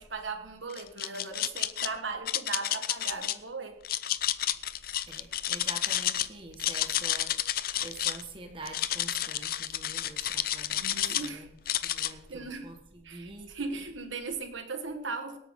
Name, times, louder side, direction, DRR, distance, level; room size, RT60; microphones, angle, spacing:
voice 1, 0.0-3.8 10.7-11.5 12.0-12.7 13.0-15.4, right 4 dB, 90° right, 6 dB, 1.5 m, -38 dB
sound 1, 0.7-1.9 2.3-3.3 3.8-6.3 6.5-8.2 8.7-11.3 11.7-12.1, left 12 dB, 50° left, 0.5 m, -30 dB
voice 2, 5.0-11.5 11.8-13.5, right 2 dB, 25° right, 3 dB, 1.6 m, -46 dB
24.0 x 8.5 x 3.8 m, 0.77 s
head